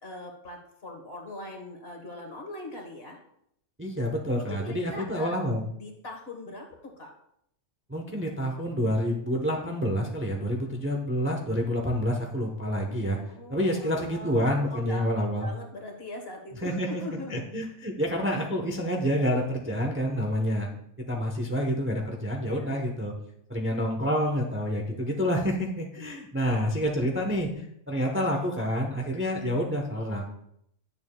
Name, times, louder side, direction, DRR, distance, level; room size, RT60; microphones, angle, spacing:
voice 1, 0.0-3.2 4.4-5.4 5.7-7.1 13.3-17.4 22.4-22.7, left 1 dB, 50° left, 2 dB, 1.6 m, -41 dB
voice 2, 3.8-5.6 7.9-13.2 13.5-15.5 16.6-20.7 21.1-23.1 23.5-30.2, equal, 10° right, 1 dB, 0.7 m, -28 dB
10.5 x 6.9 x 2.3 m, 0.73 s
omnidirectional pair, 1.4 m